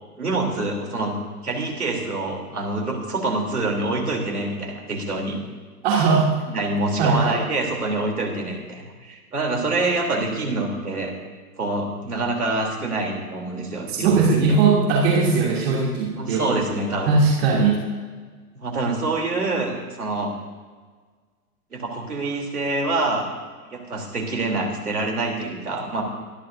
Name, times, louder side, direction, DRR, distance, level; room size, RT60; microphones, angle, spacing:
voice 1, 0.2-1.2 1.4-5.4 6.5-11.1 11.6-14.6 16.2-17.2 18.6-20.3 21.7-23.3 23.7-26.0, right 2 dB, 75° right, 1 dB, 3.4 m, -26 dB
voice 2, 5.8-6.3 7.0-7.4 13.9-16.4 17.1-17.8, right 4 dB, 40° right, -3 dB, 2.8 m, -19 dB
26.5 x 12.0 x 2.7 m, 1.5 s
figure-of-eight pair, 110°, 45 cm